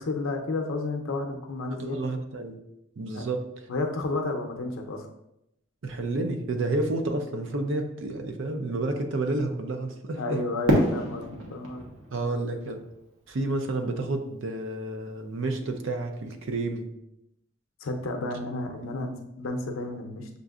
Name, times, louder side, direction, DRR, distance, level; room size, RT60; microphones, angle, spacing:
voice 1, 0.0-2.0 3.1-3.3 3.7-5.1 10.2-11.8 17.8-20.3, left 2 dB, 85° left, 3 dB, 0.6 m, -31 dB
voice 2, 1.7-2.6 3.0-3.5 5.8-10.4 12.1-12.8 13.3-16.9, right 2 dB, 65° right, 6 dB, 0.5 m, -30 dB
Fireworks, 10.7-13.7, equal, 85° right, 0.9 m, -28 dB
6.7 x 2.5 x 2.4 m, 0.85 s
head